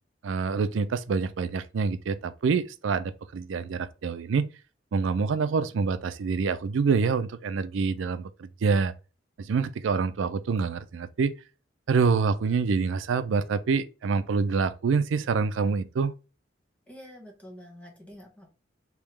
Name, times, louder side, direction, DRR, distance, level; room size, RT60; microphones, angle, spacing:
voice 1, 0.2-4.5 4.9-8.9 9.4-11.3 11.9-16.1, right 5 dB, 80° right, 0.4 m, -26 dB
voice 2, 16.9-18.5, equal, 5° left, 0.8 m, -47 dB
3.5 x 2.9 x 3.1 m
head